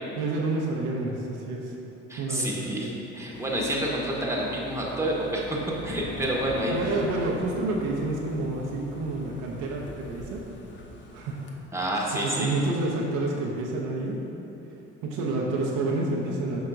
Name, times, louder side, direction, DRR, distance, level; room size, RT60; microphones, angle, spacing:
voice 1, 0.2-1.8 2.2-2.9 6.7-10.4 11.1-11.5 12.1-14.4 14.7-14.8 15.0-16.6, right 2 dB, 60° right, -2 dB, 0.9 m, -29 dB
voice 2, 2.1-5.6 5.8-7.0 11.7-12.5, right 1 dB, 10° right, -3 dB, 1.3 m, -29 dB
sound 1, 3.3-11.5, left 2 dB, 30° left, 0.9 m, -43 dB
7.8 x 5.5 x 2.6 m, 2.9 s
hypercardioid pair, 55°, 35 cm